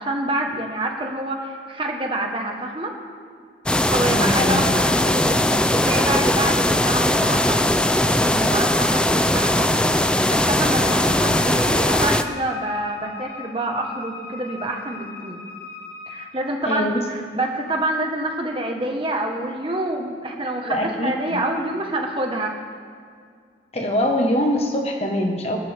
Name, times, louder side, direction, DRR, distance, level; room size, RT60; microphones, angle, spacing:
voice 1, 0.0-2.9 3.9-15.4 16.1-22.5, right 1 dB, 30° right, 2 dB, 1.4 m, -27 dB
sound 1, 3.7-12.2, left 1 dB, 5° left, 0.4 m, -19 dB
voice 2, 4.0-4.7 11.1-11.2 16.6-17.0 20.6-21.4 23.7-25.6, left 1 dB, 35° left, 2 dB, 1.4 m, -23 dB
Wind instrument woodwind instrument, 10.8-16.3, left 5 dB, 85° left, 2.2 m, -39 dB
21.0 x 12.0 x 3.6 m, 2.1 s
head